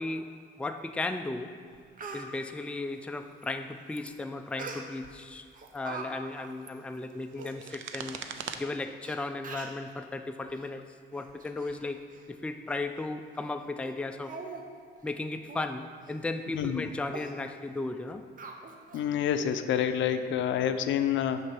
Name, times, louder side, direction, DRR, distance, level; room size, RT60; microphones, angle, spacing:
voice 1, 0.0-1.5 2.1-5.5 5.7-8.3 8.5-10.8 11.1-12.0 12.3-14.3 15.0-18.2, left 2 dB, 5° left, 6 dB, 0.4 m, -35 dB
Speech, 1.3-1.4 1.7-2.3 4.6-5.1 5.5-6.1 6.4-6.5 7.1-7.2 7.4-7.5 8.3-8.4 9.0-9.1 9.4-9.8 10.5-10.7 11.1-11.8 12.1-12.3 12.7-12.8 13.3-13.5 13.8-13.9 14.2-14.6 15.0-15.1 15.5-15.7 16.0-16.2 16.6-16.7 17.1-17.3 18.4-19.0 19.4-19.5, right 4 dB, 45° right, 0.8 m, -43 dB
Bats in Highgate Wood, 3.3-3.5 3.9-4.2 4.5-4.7 5.5-5.8 6.4-8.6, right 8 dB, 75° right, 0.5 m, -43 dB
voice 2, 16.5-16.9 18.9-21.4, left 9 dB, 75° left, 9 dB, 0.5 m, -28 dB
6.3 x 4.6 x 6.0 m, 2.1 s
cardioid pair, 90°, 20 cm